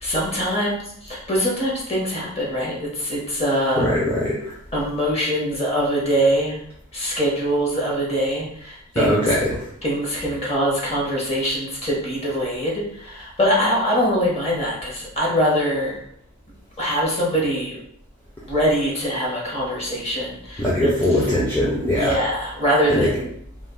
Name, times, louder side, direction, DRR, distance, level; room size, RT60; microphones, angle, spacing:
voice 1, 0.0-3.8 4.7-6.6 6.9-9.3 9.8-16.0 16.8-17.8 18.4-20.9 21.9-23.3, equal, 30° left, -4 dB, 0.9 m, -23 dB
voice 2, 3.8-4.5 9.0-9.7 20.6-22.1 22.9-23.1, left 1 dB, 10° left, -7 dB, 0.5 m, -21 dB
2.3 x 2.3 x 3.6 m, 0.68 s
head